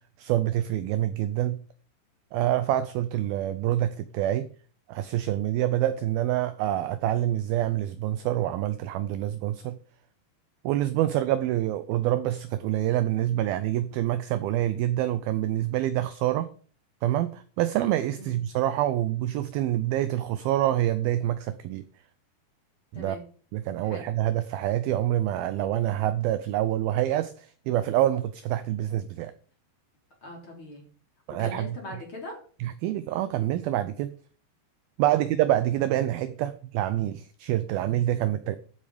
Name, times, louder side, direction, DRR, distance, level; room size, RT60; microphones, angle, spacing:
voice 1, 0.2-1.6 2.3-4.5 4.9-9.8 10.6-16.5 17.0-21.8 22.9-23.2 23.5-29.3 31.3-31.8 32.6-34.1 35.0-38.6, right 13 dB, 80° right, 2.2 m, -26 dB
voice 2, 30.2-30.9 31.4-32.4 35.1-35.2, left 1 dB, 30° left, 4.1 m, -40 dB
14.0 x 7.6 x 5.0 m
omnidirectional pair, 4.9 m